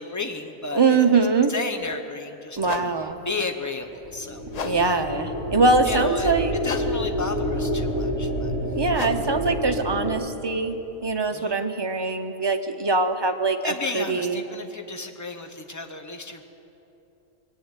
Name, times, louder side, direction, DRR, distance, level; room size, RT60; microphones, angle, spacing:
voice 1, 0.0-1.0 1.5-4.9 5.8-6.3 6.6-8.5 11.3-11.6 13.6-16.4, left 3 dB, 15° left, 4 dB, 0.7 m, -33 dB
voice 2, 0.7-1.5 2.6-3.2 4.6-6.5 8.8-14.4, right 3 dB, 25° right, 6 dB, 0.6 m, -23 dB
sound 1, 1.8-1.9 2.6-11.4, left 6 dB, 70° left, 0.3 m, -39 dB
sound 2, 4.0-10.1, equal, 90° left, 3.4 m, -28 dB
21.0 x 7.6 x 9.0 m, 3.0 s
omnidirectional pair, 1.4 m